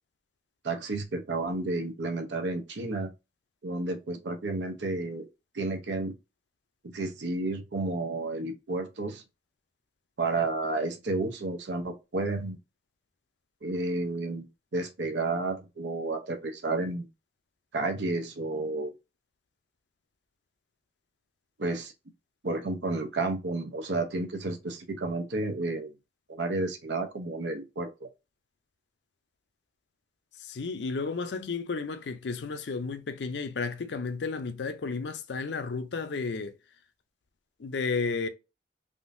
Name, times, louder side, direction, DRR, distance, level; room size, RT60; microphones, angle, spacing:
voice 1, 0.6-3.1 3.6-5.3 5.5-6.1 6.9-9.2 10.2-12.6 13.6-17.1 17.7-18.9 21.6-21.9 22.4-25.9 26.3-28.1, right 2 dB, 80° right, 0.7 m, -31 dB
voice 2, 30.4-36.5 37.6-38.3, left 4 dB, 75° left, 0.5 m, -32 dB
3.6 x 2.6 x 2.5 m
head